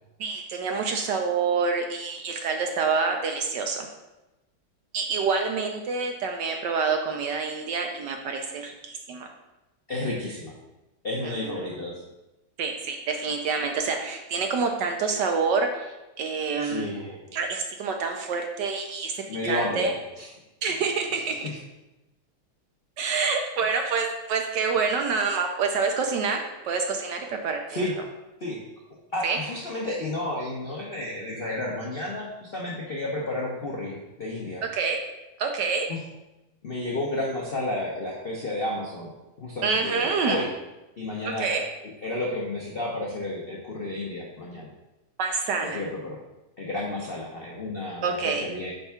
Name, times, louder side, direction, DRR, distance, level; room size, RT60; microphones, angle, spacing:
voice 1, 0.2-3.9 4.9-9.3 11.4-11.6 12.6-17.0 17.3-19.1 19.4-19.9 20.6-21.5 23.0-27.8 29.2-29.4 34.7-35.0 35.4-35.9 39.6-40.4 41.4-41.7 45.2-45.8 48.0-48.4, right 5 dB, 70° right, 4 dB, 1.1 m, -27 dB
voice 2, 9.9-10.5 11.0-12.0 16.6-17.3 19.3-20.3 21.1-21.5 27.7-27.9 28.4-28.6 29.1-34.6 35.9-36.0 36.6-39.1 39.4-40.5 41.0-41.5 42.0-44.7 45.6-46.2 46.6-48.7, left 2 dB, 75° left, -3 dB, 0.5 m, -32 dB
5.4 x 3.5 x 5.6 m, 1.0 s
omnidirectional pair, 2.3 m